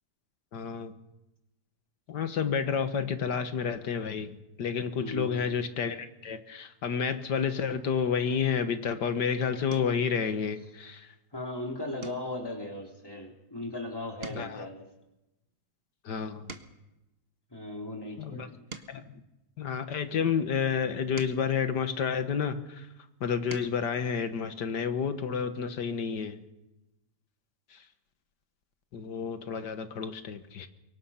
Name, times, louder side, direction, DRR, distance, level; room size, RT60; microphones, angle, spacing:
voice 1, 0.5-0.9 2.1-11.1 14.3-14.6 16.0-16.5 18.2-18.5 18.9-19.1 19.6-22.9 23.2-26.4 27.7-27.8 28.9-30.7, left 6 dB, 85° left, 9 dB, 2.1 m, -30 dB
voice 2, 5.0-5.4 11.3-14.8 17.5-18.6, left 1 dB, 15° left, 1 dB, 3.6 m, -37 dB
sound 1, 9.7-10.1 10.6-10.9 11.3-11.5 12.0-13.8 14.1-17.0 17.6-20.1 20.7-22.6 23.1-23.9 25.3-25.4 25.7-25.8, right 4 dB, 40° right, 1.6 m, -49 dB
25.0 x 23.5 x 5.8 m, 0.96 s
omnidirectional pair, 1.8 m